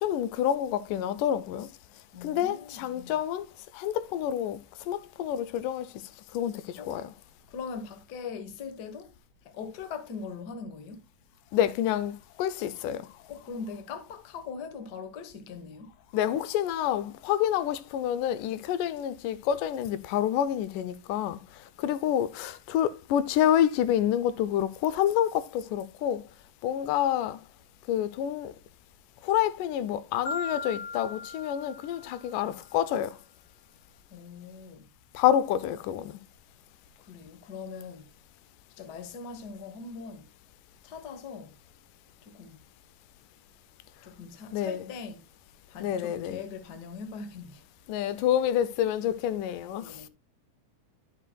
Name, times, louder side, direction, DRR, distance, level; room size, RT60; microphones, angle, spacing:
voice 1, 0.0-1.7 2.2-3.5 3.7-4.6 4.9-5.9 6.3-7.1 11.5-13.1 16.1-21.4 21.8-26.2 26.6-27.4 27.9-28.5 29.2-33.2 35.1-36.1 44.5-44.9 45.8-46.4 47.9-50.0, left 10 dB, 90° left, 2.2 m, -28 dB
voice 2, 2.1-3.1 6.7-6.9 7.5-9.1 9.4-11.1 13.3-15.9 34.1-34.9 37.0-38.1 38.8-40.3 40.8-41.6 42.2-42.6 44.0-45.2 45.7-47.7 49.8-50.1, left 5 dB, 65° left, 1.0 m, -41 dB
Marimba xylophone, 30.3-32.5, left 4 dB, 45° left, 3.4 m, -38 dB
11.5 x 7.4 x 2.3 m
omnidirectional pair, 3.7 m